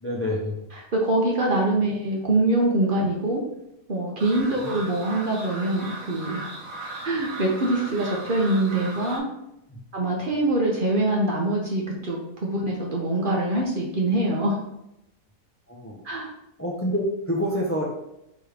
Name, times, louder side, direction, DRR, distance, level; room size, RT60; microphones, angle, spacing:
voice 1, 0.0-0.6 4.6-4.8 9.7-9.8 15.7-16.0 16.6-17.8, equal, 15° left, -3 dB, 0.4 m, -27 dB
voice 2, 0.9-3.4 3.9-6.4 7.0-9.2 9.9-14.6 16.0-16.3, right 2 dB, 45° right, -2 dB, 0.8 m, -24 dB
sound 1, 4.2-9.2, right 2 dB, 60° right, 1.6 m, -37 dB
3.6 x 3.1 x 4.8 m, 0.85 s
omnidirectional pair, 1.6 m